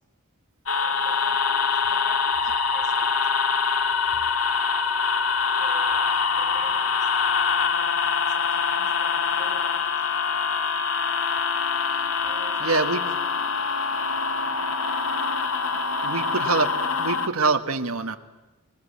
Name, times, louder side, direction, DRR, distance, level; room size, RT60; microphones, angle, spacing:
sound 1, 0.7-17.3, left 5 dB, 70° left, 1.6 m, -24 dB
voice 1, 0.7-3.2 5.5-7.1 7.5-10.1 12.2-13.8 14.2-14.8 15.7-16.2, right 2 dB, 35° right, 0 dB, 5.0 m, -48 dB
voice 2, 12.6-13.0 16.0-16.7 17.0-18.2, right 4 dB, 80° right, 6 dB, 1.3 m, -24 dB
26.5 x 20.0 x 8.5 m, 1.1 s
head